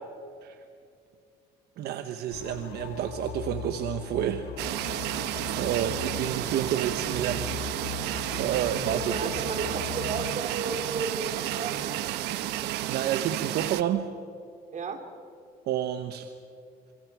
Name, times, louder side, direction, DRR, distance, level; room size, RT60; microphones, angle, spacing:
voice 1, 1.8-4.5 5.1-7.6 8.4-9.6 12.5-14.1 15.7-16.3, right 10 dB, 70° right, 8 dB, 1.1 m, -30 dB
sound 1, 2.3-10.3, left 11 dB, 90° left, 1.0 m, -40 dB
sound 2, 4.6-13.8, right 13 dB, 90° right, 1.0 m, -32 dB
voice 2, 8.9-12.0 14.7-15.1, right 4 dB, 45° right, 5 dB, 3.2 m, -33 dB
28.5 x 27.5 x 4.9 m, 2.4 s
cardioid pair, 110°, 17 cm